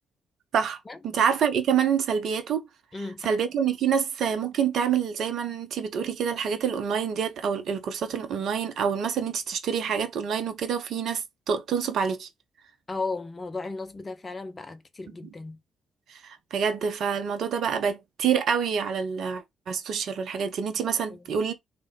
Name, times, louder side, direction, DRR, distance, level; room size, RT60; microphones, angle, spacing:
voice 1, 1.0-2.7 3.2-12.3 15.2-15.3 16.1-21.5, right 7 dB, 55° right, 0.6 m, -27 dB
voice 2, 2.9-3.3 12.9-15.6 21.1-21.2, left 3 dB, 30° left, 0.5 m, -35 dB
3.1 x 2.1 x 3.6 m
figure-of-eight pair, 40°, 0 cm